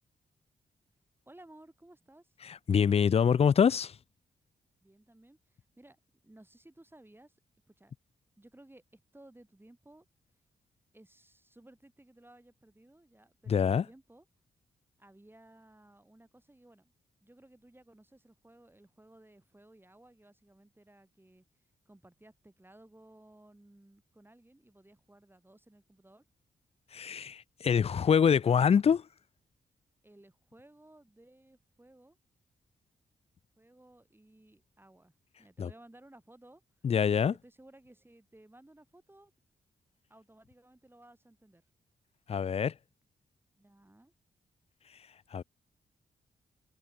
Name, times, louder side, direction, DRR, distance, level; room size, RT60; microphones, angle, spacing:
voice 1, 1.3-2.3 4.8-6.0 6.2-7.3 7.7-7.9 8.4-10.1 10.9-14.2 15.0-16.9 17.2-21.5 21.9-26.2 30.0-32.2 33.6-35.1 35.4-36.6 37.2-39.3 40.1-41.6 43.6-44.1, right 1 dB, 15° right, 6.1 m, -58 dB
voice 2, 2.4-3.9 13.5-13.9 26.9-29.0 35.6-35.7 36.8-37.3 42.3-42.7 45.3-45.4, left 7 dB, 40° left, 0.4 m, -25 dB
supercardioid pair, 55°, 16 cm